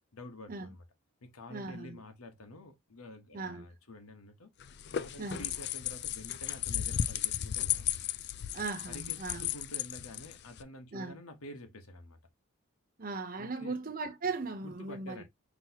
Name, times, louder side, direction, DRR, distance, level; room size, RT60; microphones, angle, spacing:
voice 1, 0.1-0.8 1.2-4.5 5.0-8.0 8.9-12.2 13.4-13.8 14.6-15.2, left 1 dB, 90° left, 1.2 m, -49 dB
voice 2, 1.5-2.0 3.3-3.7 5.2-5.5 8.5-9.5 10.9-11.1 13.0-15.2, right 3 dB, 40° right, 0.8 m, -38 dB
sound 1, 4.6-10.6, left 10 dB, 50° left, 0.4 m, -35 dB
6.1 x 3.1 x 2.8 m
head